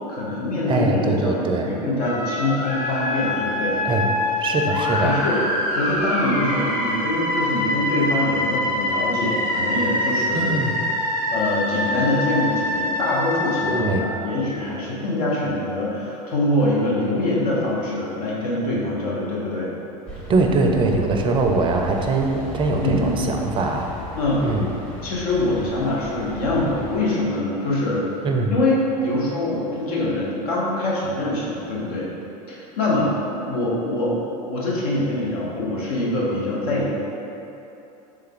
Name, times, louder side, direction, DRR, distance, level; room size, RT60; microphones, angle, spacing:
voice 1, 0.1-3.8 5.0-5.4 5.7-10.5 11.3-19.7 22.8-23.4 24.2-24.5 25.0-32.1 32.5-33.1 33.5-34.2 34.5-36.9, left 1 dB, 70° left, -5 dB, 1.0 m, -24 dB
voice 2, 0.7-1.7 3.8-4.1 4.4-5.2 10.3-10.7 13.7-14.1 20.3-23.9 24.4-24.7 28.2-28.5, right 3 dB, 25° right, 3 dB, 0.4 m, -22 dB
sound 1, 2.0-13.7, left 1 dB, 40° left, 0.8 m, -25 dB
sound 2, 20.1-27.0, equal, 5° left, 0.8 m, -36 dB
3.4 x 3.3 x 3.6 m, 2.9 s
hypercardioid pair, 85°, 20 cm